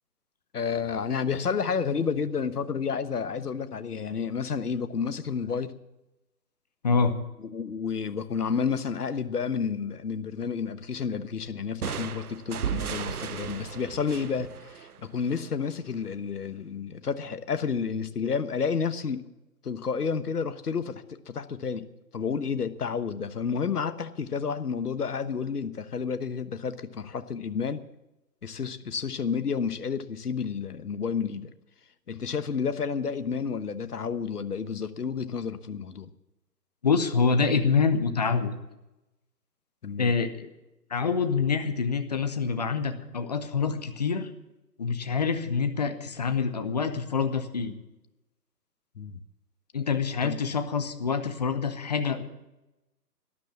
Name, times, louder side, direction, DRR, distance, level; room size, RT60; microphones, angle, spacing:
voice 1, 0.5-5.7 7.4-19.2 19.6-21.9 22.1-27.8 28.4-31.5 32.1-36.1 39.8-40.1 48.9-49.2 50.2-50.4, left 6 dB, 65° left, 12 dB, 1.2 m, -30 dB
sound 1, 11.8-15.5, right 8 dB, 60° right, 0.8 m, -35 dB
voice 2, 36.8-38.5 40.0-40.5 40.9-44.3 44.8-47.7 49.7-52.2, left 5 dB, 25° left, 9 dB, 0.9 m, -26 dB
12.5 x 12.5 x 7.3 m, 0.96 s
figure-of-eight pair, 145°, 50 cm